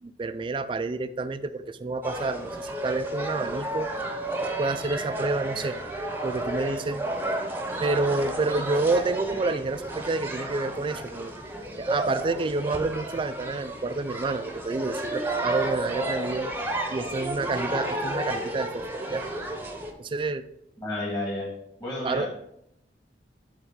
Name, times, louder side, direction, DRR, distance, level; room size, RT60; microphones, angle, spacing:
voice 1, 0.0-3.9 4.6-5.8 6.2-7.1 7.8-11.3 11.8-16.5 16.9-19.2 20.0-20.4 22.0-22.3, right 3 dB, 30° right, 12 dB, 0.3 m, -29 dB
by the carousel in forest park queens, 2.0-19.9, right 1 dB, 10° right, 0.8 m, -32 dB
voice 2, 20.8-21.5 21.8-22.3, left 1 dB, 25° left, -5 dB, 1.7 m, -31 dB
7.9 x 3.6 x 5.7 m, 0.77 s
head